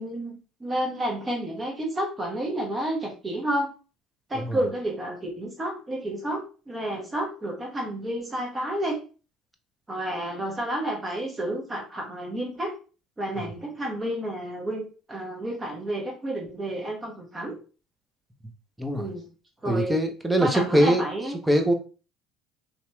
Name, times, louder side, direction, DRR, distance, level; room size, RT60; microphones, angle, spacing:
voice 1, 0.0-3.7 4.3-9.0 9.9-12.7 13.2-17.6 18.9-19.3 19.6-20.0 20.4-21.3, right 1 dB, 25° right, 1 dB, 1.0 m, -30 dB
voice 2, 19.7-21.1 21.5-21.7, equal, 5° right, 5 dB, 0.6 m, -22 dB
2.9 x 2.7 x 2.2 m, 0.35 s
supercardioid pair, 75°, 0 cm